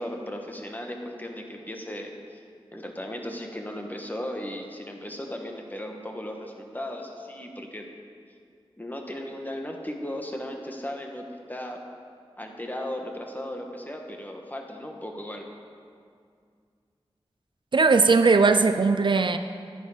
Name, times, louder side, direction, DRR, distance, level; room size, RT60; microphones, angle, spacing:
voice 1, 0.0-2.4 2.7-7.8 8.8-11.8 12.4-15.4, left 1 dB, 20° left, 2 dB, 1.4 m, -36 dB
voice 2, 17.7-19.4, right 4 dB, 55° right, 8 dB, 0.4 m, -19 dB
11.0 x 10.5 x 5.1 m, 2.2 s
wide cardioid pair, 70°, 10 cm